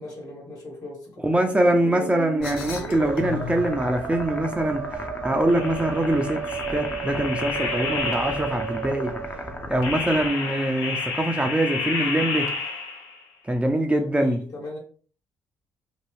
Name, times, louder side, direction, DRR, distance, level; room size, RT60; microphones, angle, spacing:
voice 1, 0.0-1.3 1.8-2.1 13.9-14.8, left 2 dB, 55° left, 1.5 m, -38 dB
voice 2, 1.2-4.8 5.2-6.4 6.7-9.1 9.7-12.5 13.5-14.4, right 1 dB, 15° right, 0.5 m, -23 dB
Musical instrument, 1.4-10.2, right 7 dB, 70° right, 0.4 m, -34 dB
sound 1, 2.4-3.7 5.5-8.8 9.8-13.2, left 4 dB, 85° left, 0.5 m, -31 dB
sound 2, 2.4-10.3, left 2 dB, 25° left, 0.7 m, -36 dB
2.7 x 2.3 x 3.2 m
supercardioid pair, 55°, 8 cm